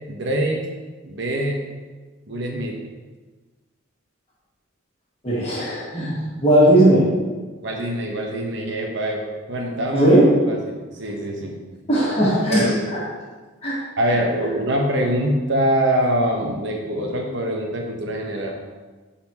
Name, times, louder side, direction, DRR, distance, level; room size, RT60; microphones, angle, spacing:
voice 1, 0.1-0.6 1.0-1.6 2.3-2.8 7.6-10.1 10.5-11.5 12.5-12.8 14.0-18.6, right 1 dB, 60° right, 1 dB, 1.0 m, -24 dB
voice 2, 5.2-7.1 9.9-10.4 11.9-12.7 13.6-13.8, right 1 dB, 30° left, -7 dB, 1.9 m, -17 dB
11.0 x 4.3 x 3.0 m, 1.3 s
head